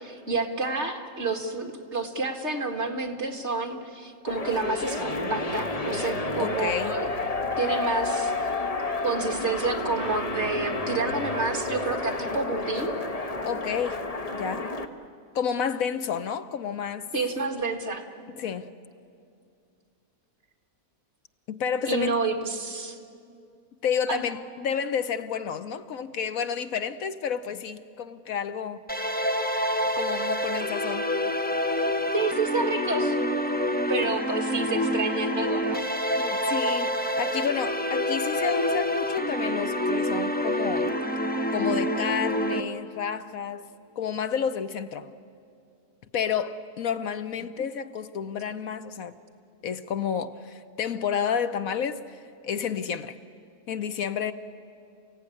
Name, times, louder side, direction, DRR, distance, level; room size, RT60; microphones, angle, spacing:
voice 1, 0.0-7.1 7.6-8.5 9.0-12.9 17.1-18.0 21.9-23.0 24.1-24.3 32.1-33.2 33.9-35.8, right 3 dB, 50° right, 4 dB, 2.2 m, -29 dB
sound 1, 4.3-14.9, left 3 dB, 25° left, 1.1 m, -30 dB
voice 2, 6.4-7.0 13.4-14.0 14.3-14.7 15.3-17.1 18.4-18.7 21.5-22.2 23.8-28.8 30.0-31.1 36.1-40.9 41.5-43.7 44.0-45.1 46.1-49.1 49.6-53.2 53.7-54.3, left 7 dB, 70° left, 11 dB, 1.2 m, -30 dB
sound 2, 28.9-42.6, equal, 10° left, 0.8 m, -27 dB
30.0 x 16.5 x 9.8 m, 2.4 s
omnidirectional pair, 1.6 m